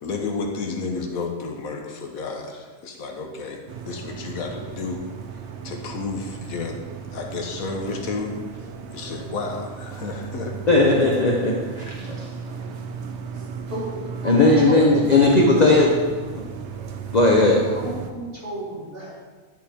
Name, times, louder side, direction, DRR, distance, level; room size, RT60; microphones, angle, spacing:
voice 1, 0.0-6.8 7.1-10.6, left 4 dB, 75° left, 3 dB, 1.2 m, -32 dB
sound 1, 3.7-18.1, right 6 dB, 60° right, 0.8 m, -35 dB
voice 2, 10.7-12.3 14.2-15.9 17.1-17.6, left 2 dB, 40° left, -1 dB, 0.6 m, -17 dB
voice 3, 13.7-15.0 17.5-19.2, right 2 dB, 40° right, -7 dB, 2.4 m, -32 dB
10.5 x 4.5 x 3.4 m, 1.4 s
omnidirectional pair, 1.6 m